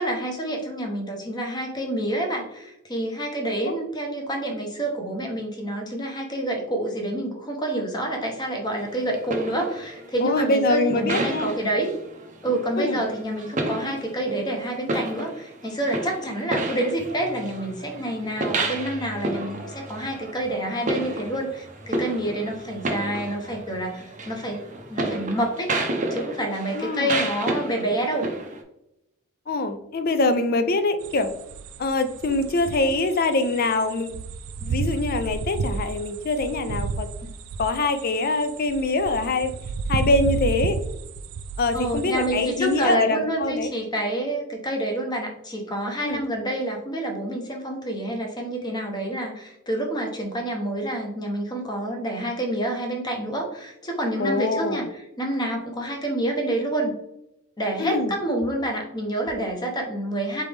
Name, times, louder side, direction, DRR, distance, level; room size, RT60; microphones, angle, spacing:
voice 1, 0.0-11.9 12.4-24.6 24.9-25.7 26.1-28.3 41.7-56.9 57.6-60.4, right 1 dB, 20° left, 2 dB, 0.7 m, -28 dB
sound 1, 8.7-28.6, right 2 dB, 35° right, 0.6 m, -32 dB
voice 2, 10.2-11.5 12.8-13.0 26.7-27.1 29.5-31.3 31.8-34.2 34.6-37.1 37.6-39.5 39.9-40.8 41.6-43.7 46.0-46.2 54.2-54.8 57.8-58.1, left 2 dB, 45° left, 9 dB, 0.4 m, -24 dB
sound 2, 31.0-42.9, right 4 dB, 90° right, 0.3 m, -32 dB
4.0 x 3.3 x 3.4 m, 0.85 s
head